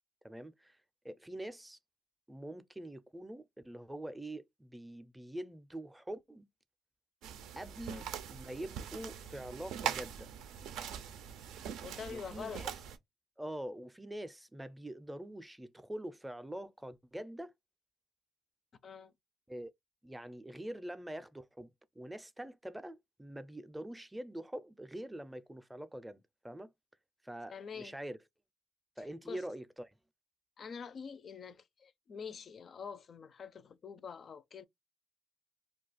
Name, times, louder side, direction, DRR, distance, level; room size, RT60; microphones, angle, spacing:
voice 1, 0.2-0.8 1.0-1.8 2.3-6.5 7.6-10.3 12.1-12.7 13.4-17.5 19.5-19.7 20.0-26.7 27.2-28.2 29.0-30.0, right 1 dB, 10° right, 0.4 m, -44 dB
sound 1, 7.2-13.0, right 8 dB, 90° right, 0.4 m, -42 dB
voice 2, 11.8-12.6 18.8-19.1 27.5-27.9 29.3-29.4 30.6-34.7, left 6 dB, 50° left, 0.4 m, -46 dB
2.4 x 2.3 x 4.0 m
cardioid pair, 90°, 0 cm